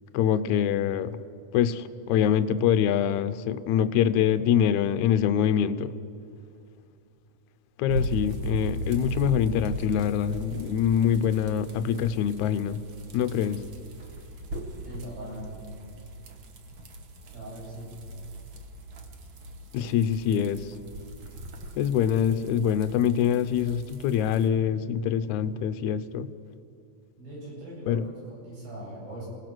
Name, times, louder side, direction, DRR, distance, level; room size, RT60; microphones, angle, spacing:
voice 1, 0.1-1.2 1.5-5.9 7.8-12.8 13.1-13.6 19.7-20.7 21.8-26.3 27.9-28.0, left 9 dB, 75° left, 12 dB, 1.8 m, -24 dB
sound 1, 7.9-24.5, right 1 dB, 55° right, 1.4 m, -38 dB
voice 2, 14.8-15.6 17.3-17.9 27.2-29.3, right 1 dB, 90° right, -5 dB, 10.0 m, -40 dB
28.0 x 17.5 x 6.1 m, 2.4 s
omnidirectional pair, 4.1 m